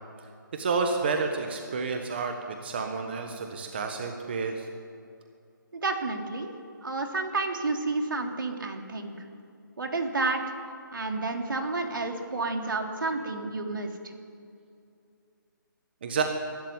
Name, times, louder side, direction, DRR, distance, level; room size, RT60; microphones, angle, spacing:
voice 1, 0.5-4.7 16.0-16.2, right 4 dB, 30° right, 4 dB, 1.3 m, -30 dB
voice 2, 5.7-6.5 6.8-9.1 9.8-10.4 10.9-13.9, right 3 dB, 75° right, 3 dB, 3.4 m, -30 dB
22.5 x 13.0 x 9.6 m, 2.5 s
hypercardioid pair, 175°, 11 cm